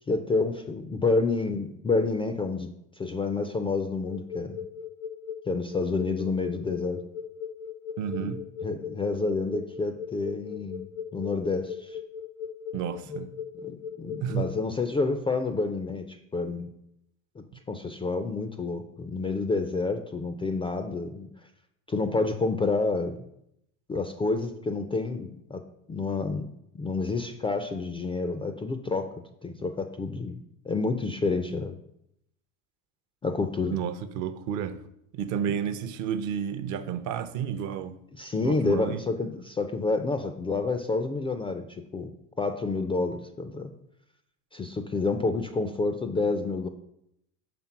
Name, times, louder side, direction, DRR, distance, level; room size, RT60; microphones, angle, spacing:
voice 1, 0.1-4.6 5.5-7.0 8.2-8.3 8.6-10.9 11.1-12.0 13.6-16.7 17.7-21.3 21.9-23.2 23.9-25.6 25.9-26.5 26.7-29.1 29.4-30.4 30.7-31.8 33.2-33.8 35.5-35.6 38.2-42.1 42.4-43.7 44.5-46.7, left 3 dB, 15° left, 0.3 m, -29 dB
sound 1, 4.0-14.6, left 7 dB, 80° left, 0.9 m, -37 dB
voice 2, 8.0-8.4 12.7-13.3 14.2-14.5 33.7-34.8 35.1-37.9 38.4-39.0, right 8 dB, 50° right, 0.6 m, -31 dB
5.9 x 3.6 x 5.7 m
supercardioid pair, 100°, 39 cm